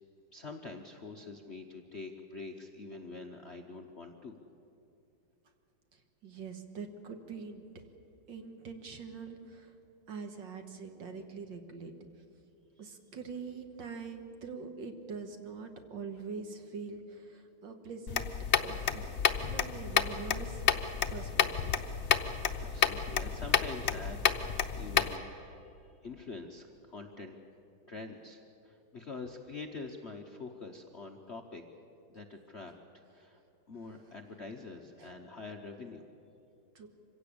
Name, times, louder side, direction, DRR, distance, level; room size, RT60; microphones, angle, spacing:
voice 1, 0.3-4.4 12.8-12.9 22.3-24.3 24.7-27.4 27.8-31.6 32.1-33.4 33.7-36.0, left 3 dB, 45° left, 3 dB, 0.9 m, -45 dB
voice 2, 5.9-7.6 8.3-9.8 10.1-11.9 12.8-18.3 18.6-20.6 21.1-21.7 33.9-34.0 35.0-35.1 36.8-36.9, right 5 dB, 60° right, 5 dB, 2.1 m, -44 dB
sound 1, 18.1-25.2, left 7 dB, 80° left, 0.6 m, -30 dB
25.5 x 16.5 x 8.6 m, 2.8 s
omnidirectional pair, 2.4 m